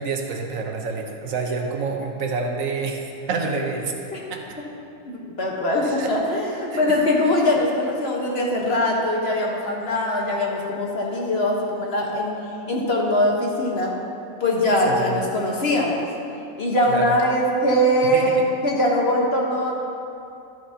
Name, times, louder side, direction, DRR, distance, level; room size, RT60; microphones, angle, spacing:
voice 1, 0.0-3.9 4.3-4.5 5.8-6.2 6.7-7.0 14.8-15.2 16.9-17.2 18.1-18.3, right 4 dB, 75° right, 2 dB, 1.3 m, -28 dB
voice 2, 5.0-12.3 12.7-13.9 14.4-16.1 16.6-19.7, left 1 dB, 50° left, -2 dB, 1.4 m, -22 dB
12.5 x 9.2 x 2.9 m, 2.6 s
omnidirectional pair, 1.5 m